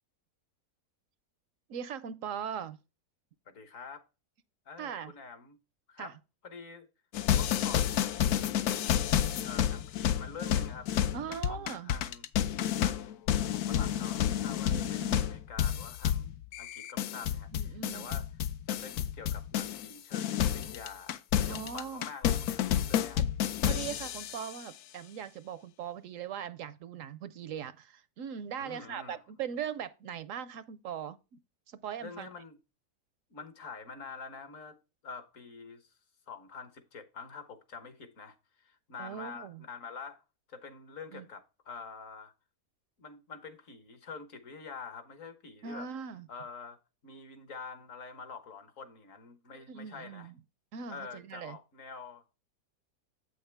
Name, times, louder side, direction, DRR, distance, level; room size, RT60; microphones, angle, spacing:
voice 1, 1.7-2.8 4.8-5.1 6.0-6.1 11.1-11.9 14.7-15.2 17.5-18.1 21.5-22.1 23.1-23.3 23.7-31.4 31.7-32.3 39.0-39.6 41.1-41.2 45.6-46.3 49.7-50.3 50.7-51.6, right 8 dB, 70° right, 0.9 m, -40 dB
voice 2, 3.5-4.0 4.6-5.6 5.9-6.1 6.4-6.9 7.3-10.9 11.3-12.2 12.8-16.3 16.6-18.3 18.7-23.2 28.6-29.2 32.0-32.6 33.3-34.8 35.0-35.9 36.3-40.2 40.5-42.3 43.0-45.9 46.3-46.8 47.0-50.3 50.9-52.2, left 5 dB, 60° left, 1.5 m, -46 dB
FX comedy marching, 7.1-19.9 20.1-24.5, left 10 dB, 80° left, 1.1 m, -30 dB
8.5 x 6.5 x 3.3 m
omnidirectional pair, 1.6 m